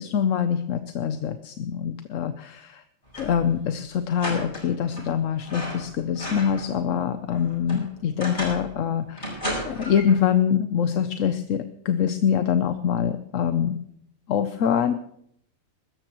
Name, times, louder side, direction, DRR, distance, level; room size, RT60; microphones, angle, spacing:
voice 1, 0.0-2.8 3.2-13.8 14.3-14.9, left 8 dB, 70° left, 9 dB, 1.1 m, -24 dB
sound 1, 3.1-3.5 3.7-3.8 4.2-5.1 5.4-6.7 7.1-8.7 9.2-10.2, equal, 35° left, 7.5 m, -34 dB
22.0 x 13.5 x 3.0 m, 0.71 s
omnidirectional pair, 1.4 m